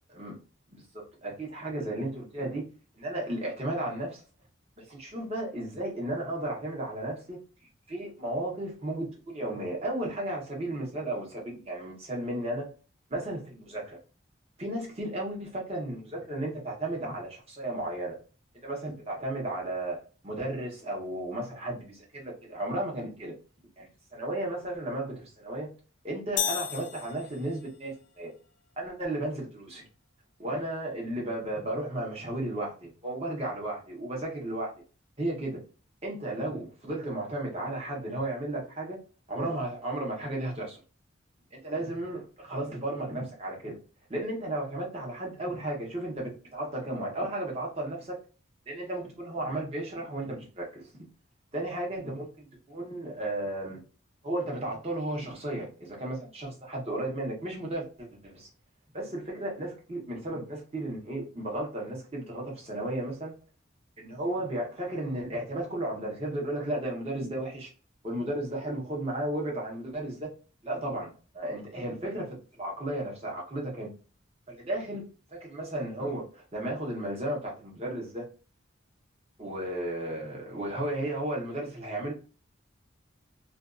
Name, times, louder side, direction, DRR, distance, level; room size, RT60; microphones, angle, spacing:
voice 1, 1.2-2.6 2.9-4.2 4.8-7.4 7.9-12.7 13.1-14.0 14.6-18.2 18.6-23.3 23.8-25.7 26.0-28.3 28.8-29.8 30.4-34.7 35.2-35.6 36.0-39.0 39.3-40.8 41.6-43.8 44.1-48.2 48.7-51.0 51.5-53.8 54.2-58.5 58.9-63.4 64.0-67.7 68.0-70.3 70.6-73.9 74.5-75.0 75.3-78.2 79.4-82.1, right 1 dB, 30° right, -2 dB, 0.9 m, -34 dB
sound 1, 26.4-27.8, left 10 dB, 70° left, 0.4 m, -33 dB
2.5 x 2.3 x 2.5 m, 0.36 s
head